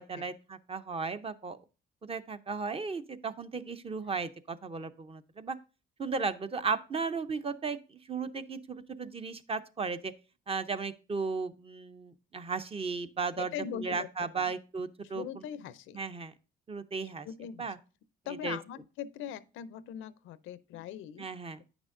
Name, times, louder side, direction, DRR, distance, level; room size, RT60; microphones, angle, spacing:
voice 1, 0.0-1.6 2.0-5.6 6.0-10.1 10.5-13.5 13.8-15.2 15.9-16.3 16.7-17.3 17.6-17.8 18.4-18.6 21.2-21.6, right 4 dB, 30° right, 0.6 m, -35 dB
voice 2, 13.4-14.1 14.3-14.5 15.0-16.0 17.2-17.7 18.3-21.3, left 9 dB, 90° left, 0.5 m, -41 dB
8.9 x 6.1 x 2.5 m
cardioid pair, 90°, 20 cm